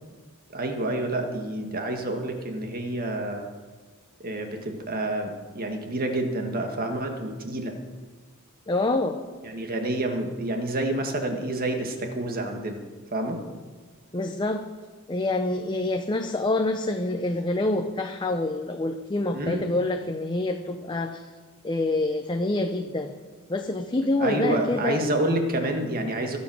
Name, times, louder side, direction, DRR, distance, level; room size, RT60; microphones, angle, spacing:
voice 1, 0.5-3.5 4.2-7.7 9.4-12.8 13.1-13.4 19.3-19.6 24.2-26.4, right 1 dB, 45° right, 4 dB, 1.8 m, -28 dB
voice 2, 8.7-9.2 14.1-14.7 15.1-21.3 21.6-23.1 23.5-25.0, left 2 dB, 20° left, 5 dB, 0.7 m, -26 dB
22.5 x 7.4 x 6.3 m, 1.4 s
head